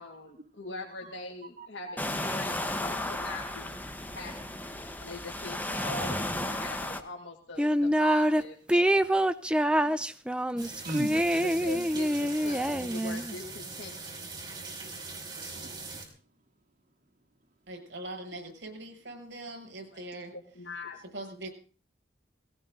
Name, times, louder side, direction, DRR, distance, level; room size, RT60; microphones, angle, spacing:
voice 1, 0.0-3.9 4.1-4.6 5.0-9.1 11.3-13.9 19.9-21.0, left 3 dB, 80° left, 2 dB, 2.6 m, -42 dB
voice 2, 1.6-2.2 9.7-10.0 10.5-11.1 11.6-11.8 14.8-15.1 15.6-15.9, right 1 dB, 45° right, 1 dB, 3.2 m, -41 dB
sound 1, 2.0-7.0, left 1 dB, 10° left, 1.4 m, -34 dB
sound 2, 7.6-8.4 8.7-13.3, equal, 5° right, 0.7 m, -26 dB
sound 3, 10.6-16.0, right 3 dB, 25° right, 5.0 m, -41 dB
voice 3, 17.7-20.3 21.1-21.5, right 2 dB, 70° right, 4 dB, 6.8 m, -41 dB
18.5 x 18.0 x 4.0 m, 0.39 s
head